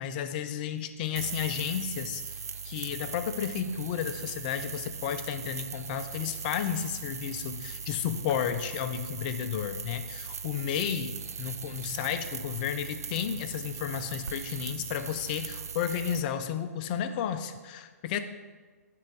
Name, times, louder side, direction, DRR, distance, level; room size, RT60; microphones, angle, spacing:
voice 1, 0.0-2.2 2.6-18.2, left 9 dB, 30° left, 9 dB, 0.5 m, -32 dB
sound 1, 1.2-16.2, right 6 dB, 70° right, 0.5 m, -39 dB
9.7 x 3.8 x 4.6 m, 1.4 s
figure-of-eight pair, 125°, 9 cm